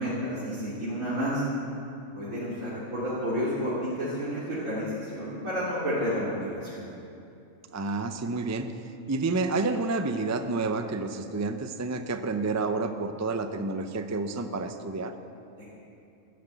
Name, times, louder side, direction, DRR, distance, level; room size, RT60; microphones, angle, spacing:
voice 1, 0.0-1.5 2.1-6.8 15.6-15.7, equal, 75° right, -10 dB, 3.4 m, -30 dB
voice 2, 7.7-8.7 9.1-15.1, right 3 dB, 20° right, 7 dB, 0.4 m, -29 dB
13.0 x 12.0 x 8.2 m, 2.7 s
omnidirectional pair, 1.4 m